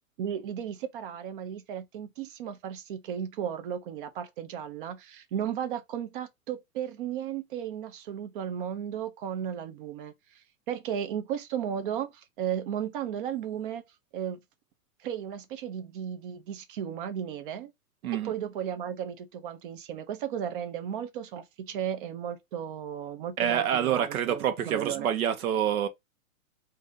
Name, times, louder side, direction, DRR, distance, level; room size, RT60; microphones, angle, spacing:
voice 1, 0.2-10.1 10.7-13.8 14.1-14.4 15.0-17.7 18.2-25.1, right 9 dB, 40° right, 0.7 m, -35 dB
voice 2, 23.4-25.9, right 9 dB, 80° right, 1.1 m, -27 dB
3.8 x 2.7 x 3.7 m
supercardioid pair, 165°, 42 cm